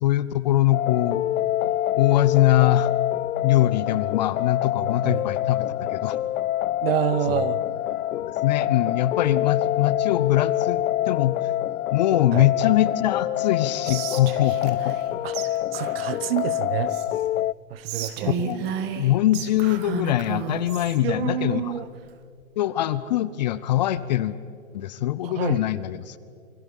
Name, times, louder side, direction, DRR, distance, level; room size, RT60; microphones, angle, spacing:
voice 1, 0.0-1.3 1.9-2.9 3.4-6.2 7.3-7.5 8.1-11.5 11.9-14.9 18.3-21.8 22.6-24.4 24.7-26.2, left 13 dB, 30° left, 16 dB, 0.6 m, -23 dB
sound 1, 0.7-17.5, left 13 dB, 80° left, 0.5 m, -26 dB
voice 2, 6.8-7.6 12.3-12.5 15.2-15.3 15.7-16.9 17.7-18.3 21.0-21.9 25.2-25.6, right 10 dB, 45° right, 16 dB, 1.0 m, -27 dB
Whispering, 13.8-15.1 15.3-15.5 15.7-17.3 17.8-21.0, right 8 dB, 25° right, 1.6 m, -33 dB
28.0 x 24.0 x 5.3 m, 2.3 s
hypercardioid pair, 145°, 41 cm